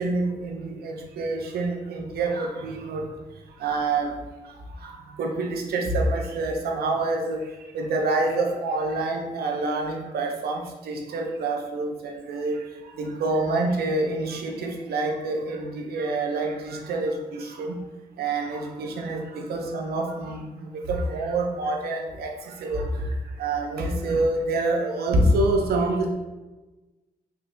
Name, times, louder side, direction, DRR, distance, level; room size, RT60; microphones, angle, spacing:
voice 1, 0.0-3.0 3.6-4.1 5.2-7.4 7.7-10.6 10.9-12.6 13.0-17.1 17.6-17.7 18.2-19.2 19.5-20.4 20.9-22.3 22.6-22.8 23.4-26.1, right 2 dB, 90° right, 2 dB, 0.5 m, -26 dB
3.3 x 2.7 x 2.6 m, 1.2 s
cardioid pair, 80°, 16 cm